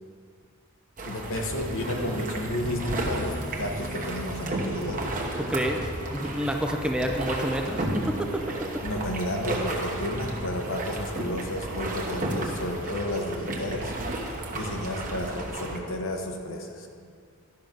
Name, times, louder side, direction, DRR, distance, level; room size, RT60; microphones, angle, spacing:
voice 1, 1.0-5.1 8.8-13.9 14.6-16.9, left 1 dB, 65° left, 3 dB, 1.1 m, -32 dB
sound 1, 1.0-15.8, right 1 dB, 40° right, 1.1 m, -33 dB
sound 2, 1.5-6.8, right 1 dB, 65° right, 1.2 m, -41 dB
voice 2, 5.4-8.4, equal, 5° right, 2 dB, 0.5 m, -29 dB
11.5 x 6.0 x 5.2 m, 2.1 s
head